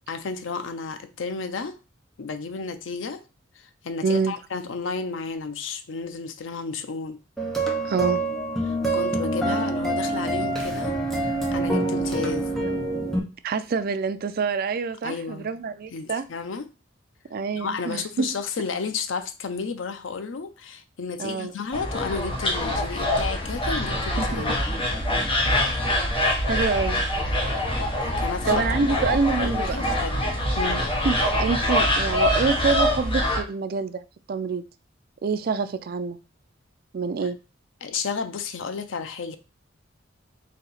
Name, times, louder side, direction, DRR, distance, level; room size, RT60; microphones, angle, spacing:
voice 1, 0.1-1.8 2.2-3.2 3.6-7.2 8.6-12.5 15.0-15.5 15.9-16.7 17.5-24.6 28.0-28.7 29.4-30.9 37.8-39.4, left 5 dB, 70° left, 0.5 m, -32 dB
voice 2, 4.0-4.3 7.8-8.2 13.4-16.2 17.3-18.3 21.2-21.5 24.2-24.4 25.5-25.6 26.5-27.0 28.5-29.9 31.0-34.0 34.3-34.6 35.2-36.2 36.9-37.4, right 4 dB, 50° right, 0.4 m, -26 dB
sound 1, 7.4-13.2, right 2 dB, ahead, 0.9 m, -26 dB
sound 2, 21.7-33.4, left 1 dB, 25° left, 1.0 m, -24 dB
4.1 x 2.8 x 4.1 m
head